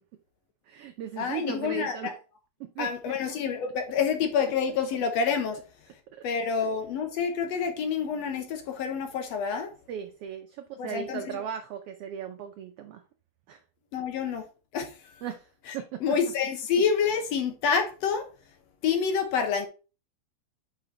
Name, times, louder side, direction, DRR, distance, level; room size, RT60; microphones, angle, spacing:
voice 1, 0.7-2.1 2.7-3.2 6.1-6.3 9.9-13.0 13.5-13.6 15.2-15.5 15.7-16.0, right 9 dB, 85° right, 1.3 m, -37 dB
voice 2, 1.2-2.0 2.8-5.6 6.2-9.7 10.8-11.4 13.9-14.4 14.7-15.0 15.7-15.8 16.0-18.2 18.8-19.7, left 6 dB, 70° left, 1.9 m, -28 dB
5.4 x 5.0 x 3.8 m
omnidirectional pair, 3.3 m